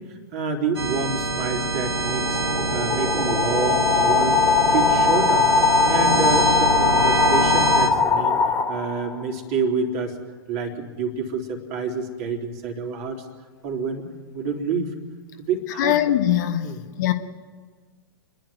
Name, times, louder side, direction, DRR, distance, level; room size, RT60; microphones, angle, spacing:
voice 1, 0.0-2.4 2.7-4.4 4.7-5.5 5.8-8.4 8.7-10.2 10.5-13.3 13.6-14.1 14.3-15.0 15.4-16.0 16.6-16.8, right 4 dB, 40° right, 3.6 m, -28 dB
sound 1, 0.8-7.9, right 3 dB, 70° right, 1.6 m, -25 dB
sound 2, 1.5-9.2, left 5 dB, 15° left, 2.4 m, -21 dB
voice 2, 15.8-16.7 17.0-17.1, left 12 dB, 45° left, 1.4 m, -21 dB
30.0 x 11.5 x 9.8 m
figure-of-eight pair, 105°, 13 cm